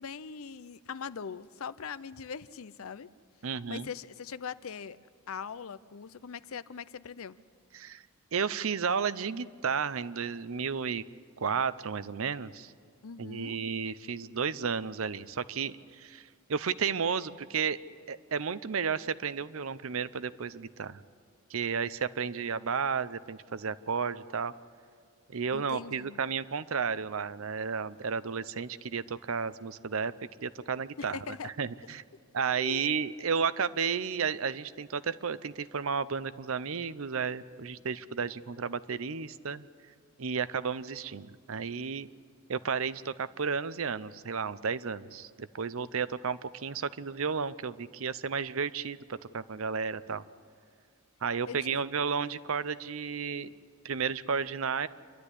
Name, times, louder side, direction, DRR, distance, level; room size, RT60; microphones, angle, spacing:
voice 1, 0.0-3.1 3.7-5.0 5.3-7.4 13.0-13.6 25.5-26.2 31.0-31.5 32.5-32.9 51.5-51.8, left 6 dB, 70° left, 15 dB, 0.6 m, -41 dB
voice 2, 3.4-3.9 7.7-8.0 8.3-11.0 11.4-12.7 13.2-16.2 16.5-17.8 18.1-21.0 21.5-24.5 25.3-30.1 30.4-32.0 32.3-39.6 40.2-42.1 42.5-50.2 51.2-53.5 53.8-54.9, right 6 dB, 65° right, 15 dB, 0.6 m, -32 dB
27.5 x 12.0 x 9.8 m, 2.1 s
head